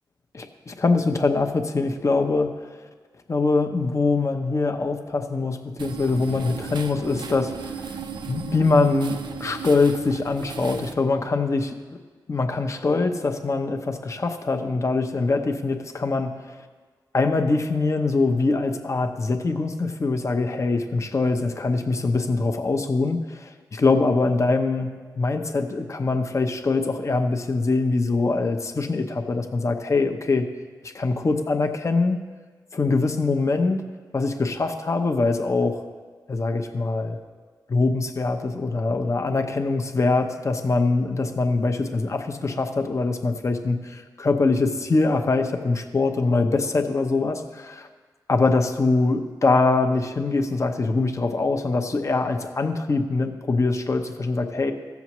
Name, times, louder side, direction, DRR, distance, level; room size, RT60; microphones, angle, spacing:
voice 1, 0.3-2.5 3.3-7.8 8.2-11.8 12.3-16.6 17.1-30.5 30.8-32.2 32.7-33.9 34.1-35.8 36.3-37.2 37.7-47.9 48.3-54.7, left 3 dB, 40° left, 5 dB, 0.8 m, -23 dB
sound 1, 5.8-10.9, right 6 dB, 75° right, 0.6 m, -35 dB
15.5 x 7.1 x 3.1 m, 1.5 s
cardioid pair, 75°, 8 cm